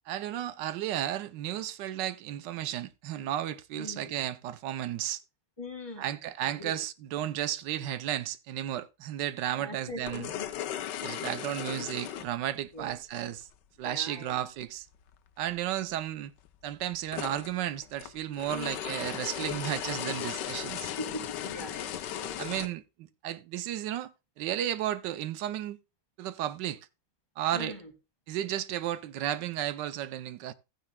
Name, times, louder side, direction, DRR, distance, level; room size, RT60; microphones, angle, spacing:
voice 1, 0.1-5.2 6.0-10.3 11.0-13.5 13.8-14.8 15.4-16.3 16.6-20.9 22.4-24.1 24.4-25.8 26.2-26.8 27.4-27.7 28.3-30.5, right 12 dB, 80° right, 1.3 m, -33 dB
voice 2, 3.7-4.2 5.6-6.8 9.6-10.5 12.7-13.0 13.8-14.4 18.5-18.9 21.0-22.3 27.5-27.9, left 1 dB, 15° left, 1.8 m, -42 dB
sound 1, 9.9-13.4 15.1-15.2 15.5-15.6 16.4-22.7, left 11 dB, 80° left, 1.3 m, -37 dB
14.0 x 9.1 x 2.2 m
omnidirectional pair, 1.9 m